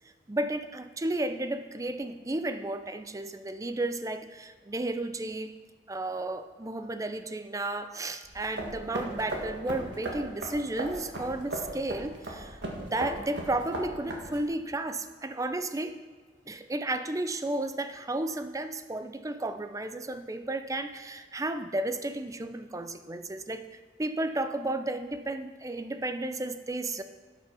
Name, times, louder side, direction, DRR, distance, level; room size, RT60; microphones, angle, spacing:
voice 1, 0.3-5.5 5.9-16.0 16.5-23.7 24.0-27.0, right 2 dB, 20° right, 10 dB, 0.5 m, -33 dB
sound 1, 8.2-14.5, right 1 dB, 90° right, 2.0 m, -37 dB
12.0 x 6.2 x 5.6 m, 1.5 s
head